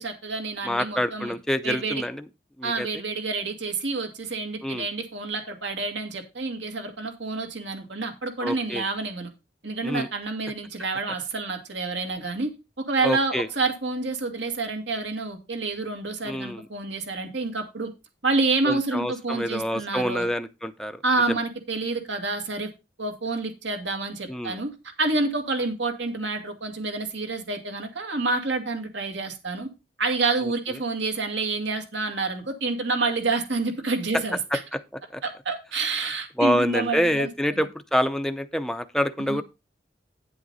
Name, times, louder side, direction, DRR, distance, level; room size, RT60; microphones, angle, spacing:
voice 1, 0.0-1.3 1.6-2.0 2.6-9.3 9.6-12.5 12.9-17.9 18.2-20.3 21.0-22.7 23.0-24.7 25.0-29.7 30.0-34.4 35.2-37.6 39.2-39.4, right 3 dB, 70° right, 4 dB, 2.3 m, -28 dB
voice 2, 0.6-2.3 2.6-2.9 4.6-4.9 8.4-8.8 9.8-10.1 13.0-13.5 16.2-16.6 18.7-21.0 21.3-21.4 24.3-24.6 30.4-30.5 34.5-34.8 35.1-35.2 36.4-39.4, equal, 5° left, 8 dB, 0.6 m, -26 dB
9.5 x 7.7 x 4.0 m, 0.26 s
head